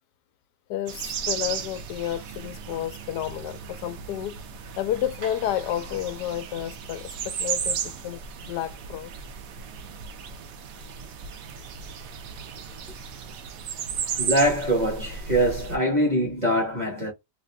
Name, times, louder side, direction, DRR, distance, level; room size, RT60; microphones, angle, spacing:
voice 1, 0.7-4.4 4.8-9.1, left 11 dB, 80° left, 1.1 m, -31 dB
sound 1, 0.9-15.8, right 6 dB, 65° right, 1.0 m, -35 dB
voice 2, 14.2-17.1, right 1 dB, 30° right, 1.2 m, -23 dB
3.1 x 2.5 x 3.3 m
omnidirectional pair, 1.8 m